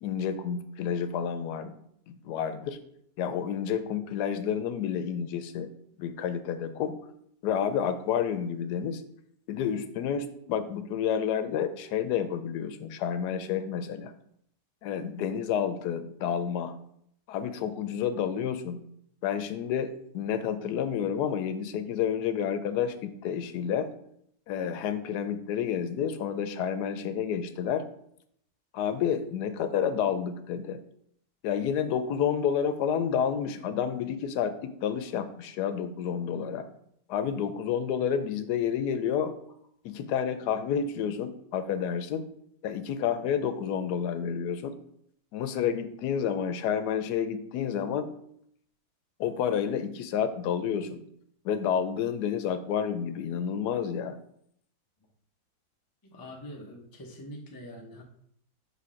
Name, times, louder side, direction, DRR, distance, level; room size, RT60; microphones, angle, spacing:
voice 1, 0.0-1.8 2.1-2.8 3.2-5.7 6.0-7.0 7.4-9.0 9.5-14.1 14.8-16.7 17.3-18.8 19.2-23.9 24.5-27.8 28.7-30.8 31.4-36.7 37.1-39.3 39.8-42.2 42.6-44.7 45.3-48.1 49.2-51.0 51.4-54.2, left 8 dB, 85° left, 10 dB, 1.1 m, -30 dB
voice 2, 56.0-58.0, equal, 20° left, 1 dB, 0.5 m, -44 dB
5.9 x 3.6 x 4.9 m, 0.71 s
omnidirectional pair, 1.7 m